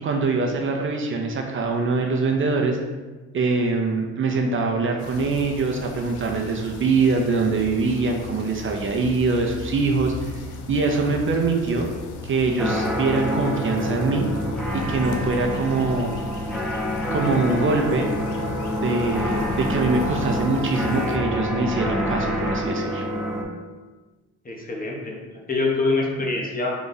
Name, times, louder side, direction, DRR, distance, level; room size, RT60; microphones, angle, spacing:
voice 1, 0.0-2.8 3.3-10.4 10.7-11.9 12.2-14.3 14.9-16.1 17.1-18.1 18.7-23.1, right 3 dB, 45° right, 2 dB, 0.5 m, -23 dB
sound 1, 5.0-21.2, left 3 dB, 80° left, 0.6 m, -37 dB
sound 2, 12.6-23.4, equal, ahead, 0.7 m, -27 dB
voice 2, 24.4-25.2 25.5-26.7, left 3 dB, 30° left, -1 dB, 0.9 m, -24 dB
3.9 x 2.4 x 3.9 m, 1.2 s
cardioid pair, 90°, 30 cm